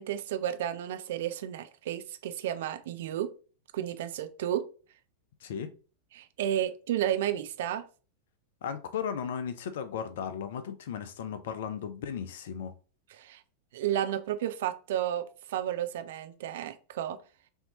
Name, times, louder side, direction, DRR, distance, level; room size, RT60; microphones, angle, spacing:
voice 1, 0.0-3.3 3.7-4.6 6.1-7.8 13.1-13.4 13.7-17.2, right 11 dB, 55° right, 0.5 m, -32 dB
voice 2, 8.6-12.7, left 7 dB, 55° left, 0.6 m, -35 dB
5.5 x 2.8 x 2.8 m
figure-of-eight pair, 90°, 0 cm